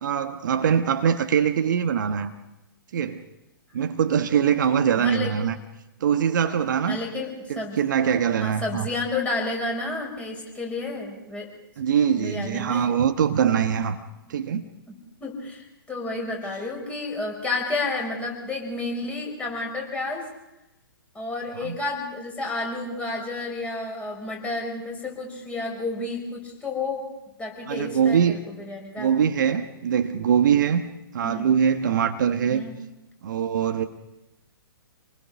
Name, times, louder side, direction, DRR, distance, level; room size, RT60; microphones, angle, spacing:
voice 1, 0.0-2.3 2.9-3.2 3.7-5.5 6.0-7.0 7.5-8.9 11.8-14.0 14.3-14.7 21.6-21.8 27.7-28.4 29.0-30.8 31.1-32.6 33.2-33.9, right 8 dB, 55° right, 7 dB, 1.3 m, -22 dB
voice 2, 5.0-5.4 6.9-7.8 8.4-11.5 11.9-12.9 14.9-15.0 15.2-20.2 21.1-27.0 27.4-29.2 31.2-31.5 32.5-32.8, left 3 dB, 10° left, 0 dB, 5.8 m, -31 dB
28.0 x 20.5 x 5.2 m, 0.94 s
figure-of-eight pair, 120°, 12 cm